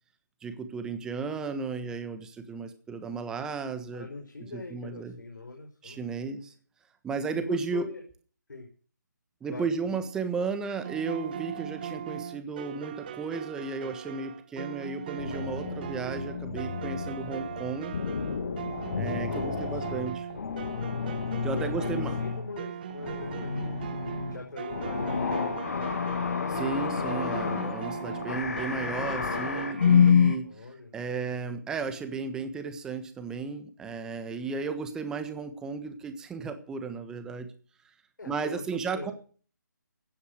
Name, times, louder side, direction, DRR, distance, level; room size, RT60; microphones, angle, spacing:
voice 1, 0.4-4.1 4.5-5.2 5.8-6.5 7.0-7.8 9.4-17.9 19.0-20.2 21.4-22.1 26.5-30.7 30.9-37.5 38.3-39.1, right 5 dB, 5° right, 8 dB, 1.4 m, -34 dB
voice 2, 3.9-6.0 7.3-8.0 8.5-8.7 9.5-10.0 19.3-20.1 21.5-26.0 30.4-30.9 38.2-38.6 38.9-39.1, left 3 dB, 75° left, 3 dB, 4.9 m, -42 dB
sound 1, 10.8-30.1, right 9 dB, 30° right, 1.0 m, -40 dB
sound 2, 15.2-22.6 22.9-30.4, left 6 dB, 50° left, 2.4 m, -29 dB
16.0 x 9.6 x 6.5 m, 0.42 s
figure-of-eight pair, 160°, 10 cm